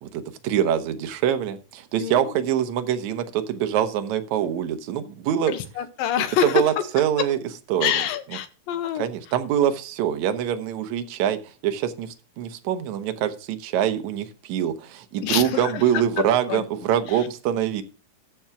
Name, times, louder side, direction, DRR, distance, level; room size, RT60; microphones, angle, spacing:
voice 1, 0.0-5.5 6.4-7.4 7.7-8.0 9.0-17.8, right 10 dB, 70° right, 8 dB, 2.0 m, -24 dB
voice 2, 2.0-2.3 5.5-6.8 7.8-9.1 15.2-15.8 16.2-16.6 17.1-17.3, left 10 dB, 85° left, 10 dB, 2.8 m, -26 dB
13.5 x 4.7 x 5.8 m, 0.35 s
omnidirectional pair, 4.0 m